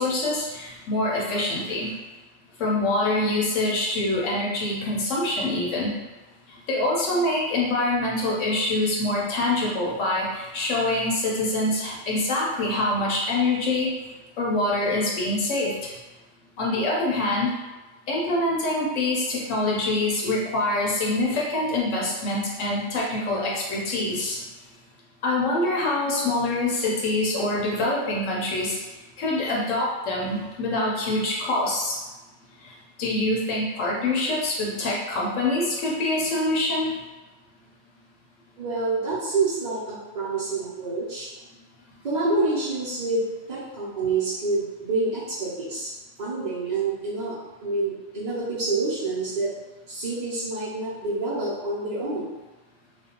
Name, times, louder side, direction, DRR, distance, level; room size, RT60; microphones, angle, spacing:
voice 1, 0.0-1.9 2.6-5.9 6.7-13.9 14.4-15.9 16.6-17.5 18.1-24.4 25.2-28.8 29.2-32.0 32.6-32.7 33.0-36.9, left 2 dB, 80° left, -4 dB, 1.0 m, -25 dB
voice 2, 38.6-41.3 42.0-43.2 43.5-45.9 46.2-49.5 49.9-52.3, right 3 dB, 50° right, -10 dB, 0.6 m, -27 dB
2.5 x 2.2 x 2.8 m, 1.2 s
omnidirectional pair, 1.3 m